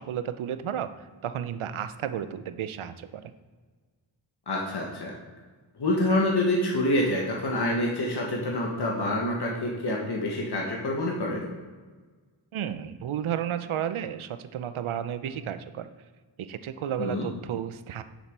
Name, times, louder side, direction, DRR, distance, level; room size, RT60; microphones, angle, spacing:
voice 1, 0.0-3.3 12.5-15.9 16.4-18.0, right 9 dB, 80° right, 11 dB, 0.7 m, -32 dB
voice 2, 4.5-5.1 5.7-11.5 17.0-17.3, left 1 dB, 55° left, -2 dB, 1.5 m, -27 dB
7.0 x 5.9 x 4.6 m, 1.4 s
cardioid pair, 55°, 48 cm